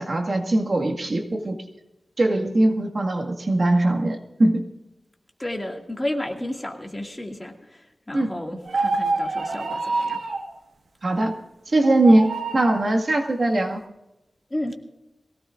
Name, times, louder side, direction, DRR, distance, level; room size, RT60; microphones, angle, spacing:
voice 1, 0.0-1.6 2.2-4.6 8.1-8.3 11.0-11.3 11.7-13.8, right 1 dB, 50° right, 2 dB, 1.9 m, -21 dB
voice 2, 5.4-10.2 14.5-14.7, left 1 dB, 20° left, 2 dB, 2.2 m, -32 dB
sound 1, 8.7-10.5 11.8-12.8, right 3 dB, 90° right, 1.5 m, -26 dB
22.5 x 17.0 x 2.5 m, 0.92 s
wide cardioid pair, 100°, 0 cm